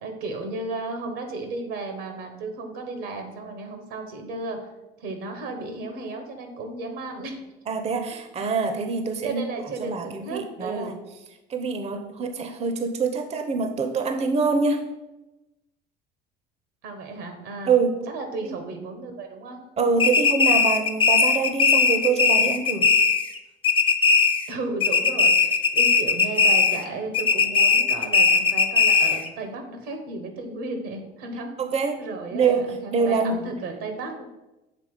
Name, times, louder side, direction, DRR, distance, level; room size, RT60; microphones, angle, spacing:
voice 1, 0.0-4.7 5.0-7.4 9.2-11.0 16.8-17.7 18.1-19.6 24.5-31.7 32.0-34.2, right 3 dB, 80° right, 5 dB, 1.2 m, -34 dB
voice 2, 7.7-9.4 9.8-11.0 11.5-14.9 17.7-18.1 18.4-18.7 19.8-22.9 31.6-32.0 32.3-33.4, right 5 dB, 30° right, 7 dB, 0.6 m, -25 dB
sound 1, 20.0-23.4 23.6-24.5 24.8-26.9 27.1-29.3, left 5 dB, 25° left, 0.6 m, -19 dB
6.8 x 3.4 x 4.8 m, 1.0 s
supercardioid pair, 75°, 21 cm